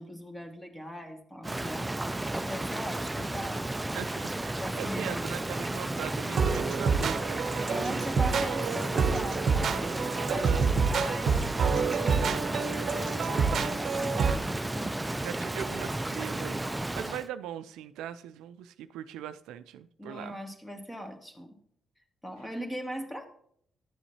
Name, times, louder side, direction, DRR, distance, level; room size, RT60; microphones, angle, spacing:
voice 1, 0.0-1.9 2.3-3.7 4.6-5.4 7.5-11.3 11.7-15.0 20.0-21.6 22.2-23.3, equal, 15° left, 1.9 m, -40 dB
Rain, 1.4-17.3, right 2 dB, 15° right, 0.5 m, -33 dB
voice 2, 3.9-8.0 10.3-10.7 15.2-20.4, right 10 dB, 80° right, 0.4 m, -40 dB
sound 1, 6.3-14.4, right 5 dB, 60° right, 0.8 m, -28 dB
11.0 x 7.0 x 2.8 m
supercardioid pair, 55°, 0 cm